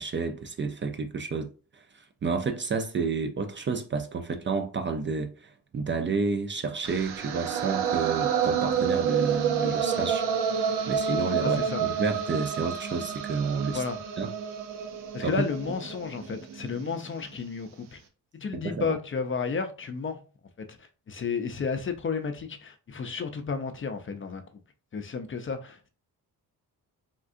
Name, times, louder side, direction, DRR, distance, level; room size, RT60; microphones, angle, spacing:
voice 1, 0.0-1.5 1.9-10.2 10.6-13.8 14.2-14.3 15.2-15.4 18.5-19.0, right 4 dB, 30° right, 0.4 m, -30 dB
sound 1, 6.8-16.9, right 7 dB, 90° right, 0.6 m, -29 dB
voice 2, 11.4-11.8 13.7-14.0 15.1-18.0 18.3-20.2 20.6-20.7 21.1-24.4 24.9-25.9, left 5 dB, 35° left, 0.5 m, -32 dB
3.6 x 2.3 x 2.4 m
cardioid pair, 75°, 38 cm